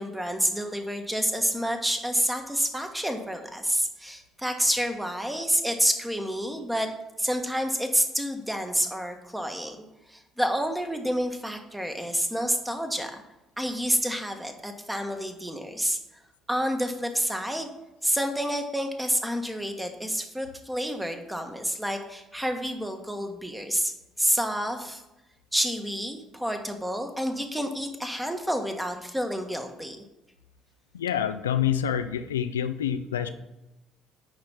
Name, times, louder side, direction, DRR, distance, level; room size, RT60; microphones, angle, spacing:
voice 1, 0.0-6.9 7.2-9.8 10.1-13.2 13.6-16.0 16.5-17.7 18.0-25.0 25.5-30.0, equal, 5° right, 5 dB, 1.4 m, -29 dB
voice 2, 30.9-33.3, left 9 dB, 80° left, 9 dB, 0.4 m, -27 dB
10.5 x 4.4 x 5.7 m, 0.96 s
figure-of-eight pair, 50°, 0 cm